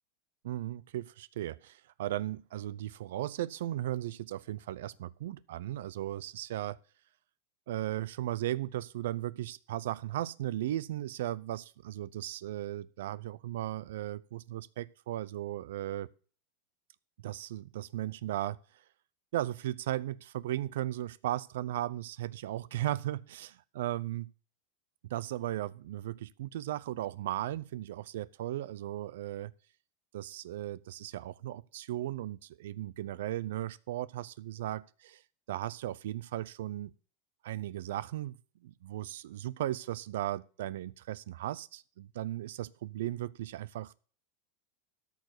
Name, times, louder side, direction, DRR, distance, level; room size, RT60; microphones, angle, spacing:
voice 1, 0.4-6.8 7.7-16.1 17.2-18.8 19.3-24.3 25.1-29.5 30.1-35.2 35.5-36.9 37.4-44.0, right 13 dB, 80° right, 19 dB, 0.5 m, -36 dB
13.5 x 4.8 x 7.9 m, 0.41 s
supercardioid pair, 145°, 0 cm